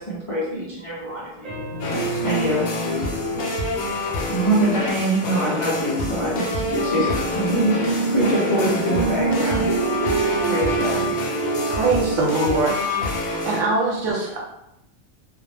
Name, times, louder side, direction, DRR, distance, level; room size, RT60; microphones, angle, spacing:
voice 1, 0.0-1.5 2.2-2.7 4.3-9.7 10.5-11.1, right 1 dB, 50° left, 0.4 m, -24 dB
voice 2, 1.4-3.9 6.2-6.4 6.7-12.3 12.8-13.1, right 5 dB, 55° right, 0.4 m, -27 dB
sound 1, 1.8-13.6, left 2 dB, 70° left, 0.8 m, -27 dB
voice 3, 11.7-12.8 13.4-14.4, right 3 dB, 75° right, 1.0 m, -22 dB
2.3 x 2.0 x 3.1 m
omnidirectional pair, 1.3 m